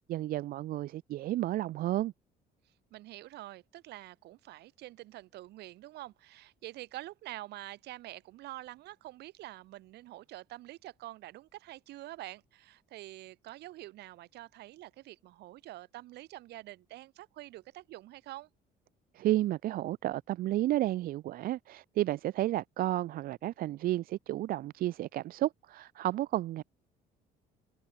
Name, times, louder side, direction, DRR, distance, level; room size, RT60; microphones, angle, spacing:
voice 1, 0.1-2.1 19.1-26.6, right 15 dB, 60° right, 0.4 m, -32 dB
voice 2, 2.6-18.5, right 16 dB, 80° right, 3.0 m, -47 dB
cardioid pair, 110°, 17 cm